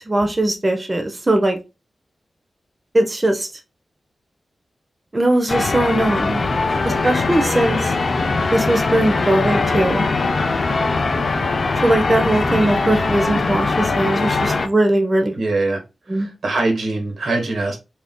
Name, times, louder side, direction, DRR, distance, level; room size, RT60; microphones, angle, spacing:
voice 1, 0.1-1.6 2.9-3.5 5.1-6.4 6.8-7.9 8.5-10.1 11.8-15.3 16.1-16.3, right 1 dB, 20° right, 0.4 m, -19 dB
sound 1, 5.5-14.7, left 3 dB, 50° left, 0.3 m, -21 dB
voice 2, 15.4-15.8 16.1-17.8, right 2 dB, 80° right, 1.0 m, -22 dB
2.4 x 2.2 x 3.5 m
wide cardioid pair, 160°, 0 cm